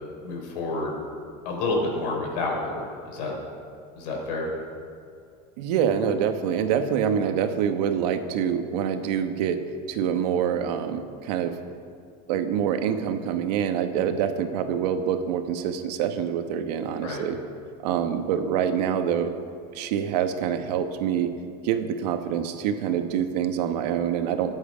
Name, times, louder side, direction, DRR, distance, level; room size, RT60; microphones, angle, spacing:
voice 1, 0.2-1.0 1.4-3.3 4.0-4.5 17.0-17.2, left 2 dB, 90° left, -1 dB, 4.3 m, -29 dB
voice 2, 5.6-11.6 12.3-17.4 17.8-19.4 19.7-21.3 21.6-24.5, right 8 dB, 85° right, 7 dB, 1.3 m, -26 dB
23.0 x 7.9 x 5.1 m, 2.4 s
cardioid pair, 160°, 20 cm